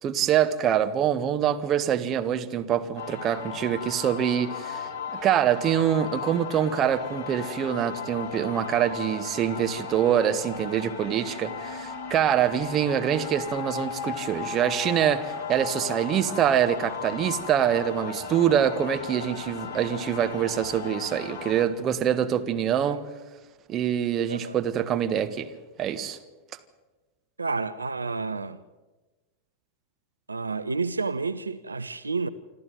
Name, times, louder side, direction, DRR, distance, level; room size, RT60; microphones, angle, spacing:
voice 1, 0.0-4.9 5.2-23.0 23.7-25.5 25.8-26.2, right 9 dB, 30° right, 1.6 m, -25 dB
sound 1, 3.0-21.7, left 6 dB, 50° left, 2.4 m, -36 dB
voice 2, 27.4-28.6 30.3-32.3, right 4 dB, 80° right, 0.6 m, -30 dB
26.0 x 13.5 x 9.4 m
figure-of-eight pair, 90°, 0 cm